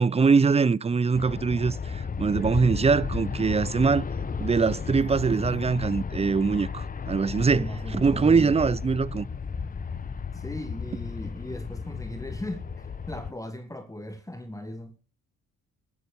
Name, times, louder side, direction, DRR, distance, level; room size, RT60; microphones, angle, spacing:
voice 1, 0.0-4.1 4.4-9.3, right 5 dB, 20° right, 0.5 m, -23 dB
Aircraft, 1.1-13.3, left 6 dB, 30° left, 0.9 m, -34 dB
voice 2, 7.4-8.7 10.3-15.0, left 1 dB, 10° left, 1.7 m, -38 dB
12.0 x 9.6 x 7.0 m
cardioid pair, 90°, 30 cm